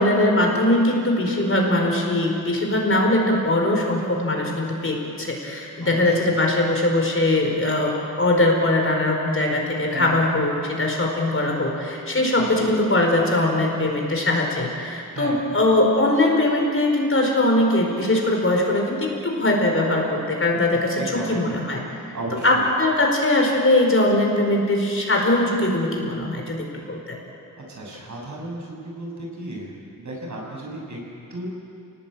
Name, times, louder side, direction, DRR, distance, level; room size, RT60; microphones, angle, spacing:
voice 1, 0.0-21.8 22.4-26.6 26.9-27.0, left 1 dB, 40° left, 1 dB, 4.8 m, -21 dB
voice 2, 5.8-6.3 9.9-10.2 12.4-12.7 15.1-15.5 20.7-21.6 22.1-22.7 27.6-31.0 31.3-31.5, right 1 dB, 60° right, -1 dB, 6.9 m, -34 dB
29.0 x 19.0 x 8.7 m, 2.7 s
wide cardioid pair, 130°, 34 cm